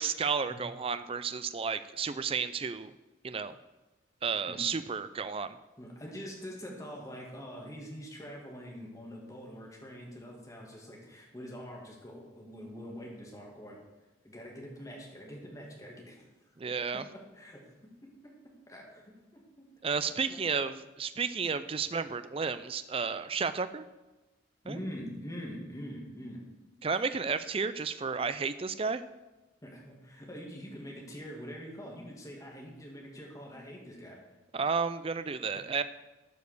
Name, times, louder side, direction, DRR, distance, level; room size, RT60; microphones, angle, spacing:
voice 1, 0.0-2.9 3.2-3.6 4.2-5.6 16.6-17.0 19.8-23.8 24.7-24.8 26.8-29.0 34.5-35.8, right 5 dB, 30° right, 12 dB, 0.4 m, -32 dB
voice 2, 5.8-13.8 14.2-16.2 16.9-17.0 17.3-17.7 18.0-18.3 18.7-19.7 20.3-20.7 24.6-26.4 27.3-27.4 29.6-34.2 35.5-35.6, equal, 15° left, -1 dB, 2.2 m, -44 dB
12.5 x 5.3 x 6.7 m, 1.1 s
head